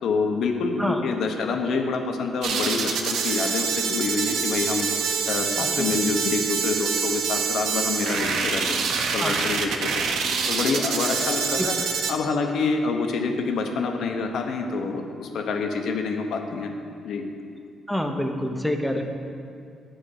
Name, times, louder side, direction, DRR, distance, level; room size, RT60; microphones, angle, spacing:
voice 1, 0.0-4.9 5.3-10.1 10.5-11.7 12.1-16.7 17.0-17.2, left 4 dB, 70° left, 4 dB, 0.9 m, -27 dB
sound 1, 2.4-12.1, right 6 dB, 85° right, 0.7 m, -26 dB
voice 2, 17.9-19.0, equal, ahead, 4 dB, 0.8 m, -27 dB
9.0 x 4.4 x 6.5 m, 2.4 s
cardioid pair, 90°, 0 cm